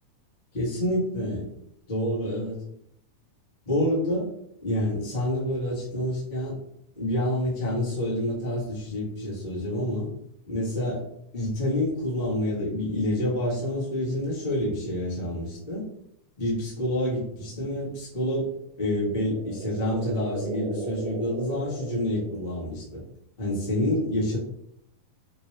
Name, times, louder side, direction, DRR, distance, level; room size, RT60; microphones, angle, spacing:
voice 1, 0.5-1.5 1.9-2.6 3.6-4.3 4.6-6.6 6.9-10.1 10.5-11.0 11.3-15.8 16.4-18.5 18.8-23.0 23.4-24.4, left 1 dB, 25° left, -7 dB, 1.0 m, -28 dB
sound 1, 18.7-22.9, right 4 dB, 70° right, 2.1 m, -37 dB
5.0 x 3.1 x 3.2 m, 0.77 s
omnidirectional pair, 3.7 m